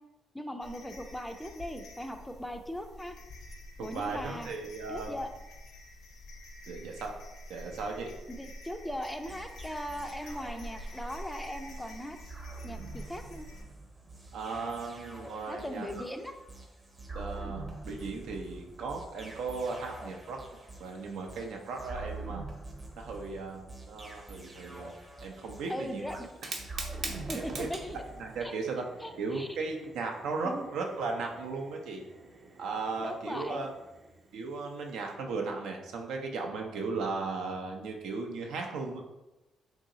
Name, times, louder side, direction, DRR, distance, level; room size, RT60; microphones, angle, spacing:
voice 1, 0.3-3.1 3.8-4.5 4.9-5.3 8.3-12.2 12.6-13.5 15.5-16.3 25.7-26.3 27.3-28.0 28.4-28.5 29.0-29.5 30.4-30.7 33.0-33.7, equal, 5° left, 6 dB, 0.3 m, -39 dB
sound 1, 0.6-13.6, left 1 dB, 70° left, 0.6 m, -47 dB
voice 2, 3.8-5.2 6.7-7.1 7.5-8.1 14.3-16.0 17.1-20.4 20.8-22.4 23.0-24.9 25.2-26.2 27.3-27.7 27.9-28.8 29.2-32.0 32.6-33.7 34.3-39.0, right 4 dB, 85° right, 2 dB, 0.5 m, -36 dB
sound 2, 9.3-28.5, right 2 dB, 20° right, 0.7 m, -46 dB
Fire, 26.3-35.1, right 3 dB, 55° right, 0.8 m, -46 dB
3.0 x 2.7 x 3.7 m, 0.99 s
cardioid pair, 90°, 0 cm